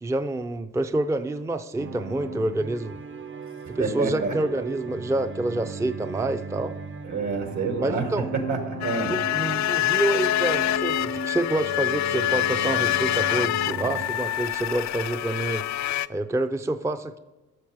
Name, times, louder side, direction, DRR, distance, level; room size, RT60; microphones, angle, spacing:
voice 1, 0.0-3.0 3.7-6.7 7.8-8.3 9.1-15.6 16.1-17.2, right 2 dB, 10° right, 9 dB, 0.5 m, -27 dB
sound 1, 1.8-14.1, right 4 dB, 40° right, 0.8 m, -37 dB
voice 2, 3.8-4.4 7.0-9.1, right 4 dB, 75° right, 4 dB, 2.2 m, -28 dB
sound 2, 8.8-16.1, left 14 dB, 65° left, 0.4 m, -26 dB
12.0 x 7.2 x 4.8 m, 1.1 s
cardioid pair, 90°, 30 cm